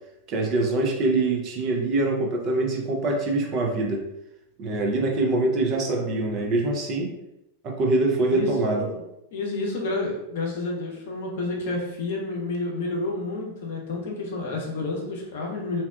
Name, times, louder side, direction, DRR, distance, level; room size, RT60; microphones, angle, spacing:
voice 1, 0.3-4.0 4.6-7.1 7.6-8.8, right 2 dB, 35° right, 0 dB, 0.5 m, -24 dB
voice 2, 8.3-9.0 9.3-15.8, left 2 dB, 55° left, -1 dB, 0.6 m, -30 dB
2.7 x 2.1 x 2.3 m, 0.85 s
figure-of-eight pair, 90°, 0 cm